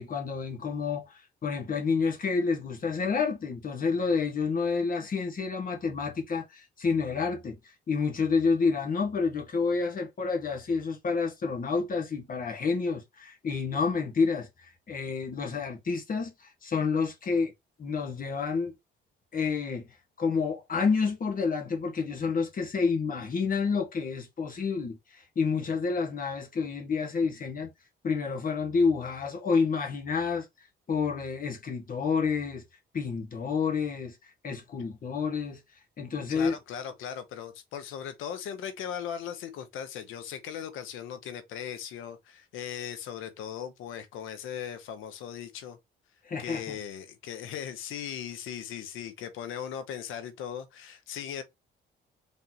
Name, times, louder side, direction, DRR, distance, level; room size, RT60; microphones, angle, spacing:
voice 1, 0.0-7.6 7.9-17.5 17.8-18.7 19.3-19.8 20.2-27.7 28.0-30.5 30.9-32.6 32.9-34.2 34.4-35.6 36.0-36.5 46.2-46.8, left 5 dB, 45° left, 1.5 m, -29 dB
voice 2, 36.3-45.8 46.4-51.4, left 9 dB, 90° left, 1.0 m, -38 dB
4.0 x 3.6 x 2.9 m
cardioid pair, 90°, 20 cm